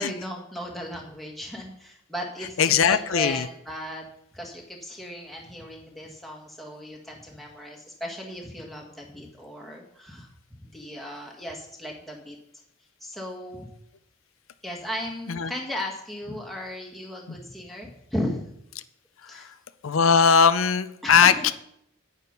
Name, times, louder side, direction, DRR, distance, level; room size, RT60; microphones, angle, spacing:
voice 1, 0.0-4.1 4.3-12.4 13.0-13.7 14.6-18.5 19.3-19.5 21.0-21.4, equal, ahead, -1 dB, 1.8 m, -36 dB
voice 2, 2.6-3.5 15.3-15.5 17.3-17.4 19.2-19.6 19.8-21.5, left 6 dB, 90° left, 12 dB, 0.5 m, -20 dB
8.9 x 8.6 x 5.3 m, 0.74 s
head